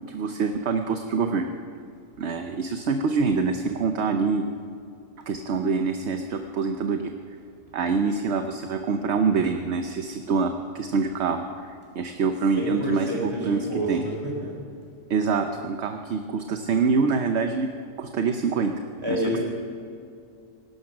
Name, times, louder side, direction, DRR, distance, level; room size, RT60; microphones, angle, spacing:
voice 1, 0.1-1.5 2.2-4.4 5.3-7.1 7.7-14.0 15.1-17.7 18.0-18.7 19.1-19.2, right 4 dB, 60° right, 6 dB, 1.0 m, -25 dB
voice 2, 12.5-14.6 19.0-19.4, equal, 20° right, -2 dB, 4.2 m, -29 dB
17.5 x 12.0 x 5.9 m, 2.4 s
omnidirectional pair, 1.3 m